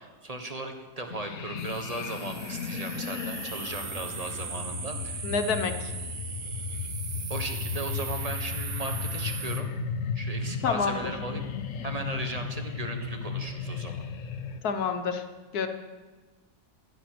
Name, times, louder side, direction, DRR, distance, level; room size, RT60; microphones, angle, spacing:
voice 1, 0.0-5.3 7.3-9.7 10.1-11.5 11.8-14.0, right 2 dB, 25° right, 5 dB, 1.3 m, -37 dB
sound 1, 1.1-14.6, left 6 dB, 60° left, 1.2 m, -35 dB
sound 2, 1.6-9.6, right 6 dB, 55° right, 1.4 m, -39 dB
voice 2, 5.2-5.9 10.6-11.1 14.6-15.2 15.5-15.7, left 5 dB, 80° left, 7 dB, 1.6 m, -28 dB
15.0 x 9.4 x 6.1 m, 1.3 s
omnidirectional pair, 1.6 m